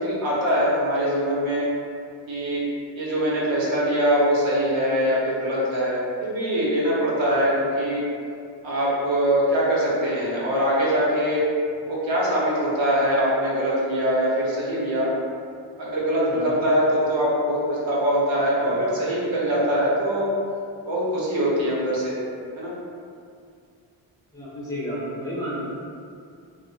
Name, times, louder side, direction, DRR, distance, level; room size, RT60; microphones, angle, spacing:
voice 1, 0.0-1.7 2.3-2.6 2.9-8.0 8.6-11.4 11.9-15.1 15.8-20.3 20.8-22.2 22.6-22.7 25.5-25.6, equal, 80° right, -7 dB, 0.9 m, -23 dB
voice 2, 24.3-25.6, equal, 10° left, -11 dB, 0.8 m, -32 dB
2.7 x 2.1 x 2.7 m, 2.3 s
cardioid pair, 95°, 46 cm